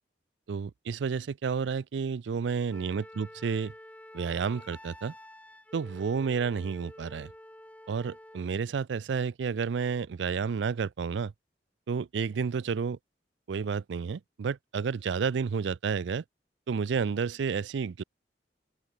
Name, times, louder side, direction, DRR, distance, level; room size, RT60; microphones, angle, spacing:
voice 1, 0.5-3.7 4.1-5.1 5.7-7.3 7.9-11.3 11.9-13.0 13.5-16.2 16.7-18.0, right 6 dB, 80° right, 0.4 m, -31 dB
Wind instrument woodwind instrument, 2.7-8.5, left 1 dB, 10° left, 2.0 m, -49 dB
open air
head